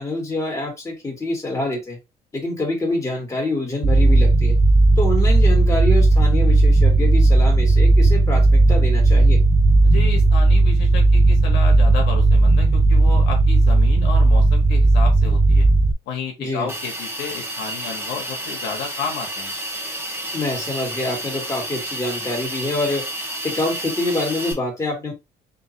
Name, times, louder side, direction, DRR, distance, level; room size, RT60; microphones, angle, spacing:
voice 1, 0.0-2.0 2.3-4.6 5.0-9.4 16.4-16.7 20.3-23.0 23.4-25.1, left 2 dB, 20° left, 0 dB, 2.3 m, -26 dB
sound 1, 3.8-15.9, right 2 dB, 35° right, 0.6 m, -15 dB
voice 2, 9.8-15.7 16.1-19.5, left 5 dB, 85° left, 2 dB, 1.4 m, -32 dB
Hiss, 16.7-24.5, right 1 dB, 15° right, 1.6 m, -30 dB
3.8 x 3.3 x 2.9 m, 0.22 s
cardioid pair, 110°, 17 cm